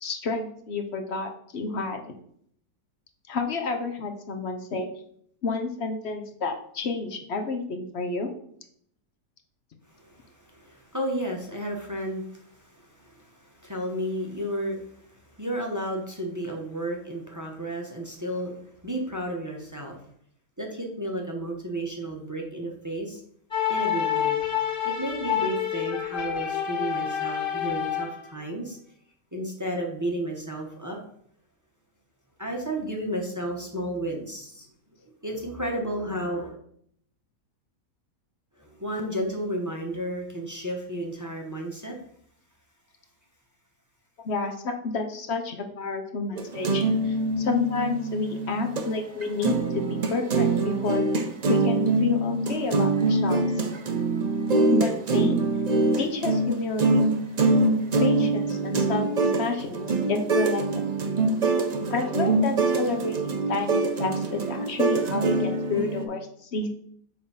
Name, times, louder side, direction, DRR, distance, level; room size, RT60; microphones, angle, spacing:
voice 1, 0.0-2.1 3.3-4.9 5.4-8.3 44.2-51.0 51.5-53.5 54.7-55.4 56.0-57.0 58.0-60.8 61.9-66.7, left 3 dB, 50° left, 5 dB, 0.9 m, -30 dB
voice 2, 9.9-20.0 20.6-23.2 23.7-24.4 24.8-28.8 29.3-31.0 32.4-34.7 35.0-36.6 38.6-42.0, right 1 dB, 15° right, 0 dB, 0.8 m, -32 dB
sound 1, 23.5-28.3, left 9 dB, 35° left, 1.6 m, -28 dB
sound 2, 46.4-48.9 49.2-66.1, right 2 dB, 80° right, 0.3 m, -24 dB
6.9 x 3.5 x 5.5 m, 0.66 s
omnidirectional pair, 1.8 m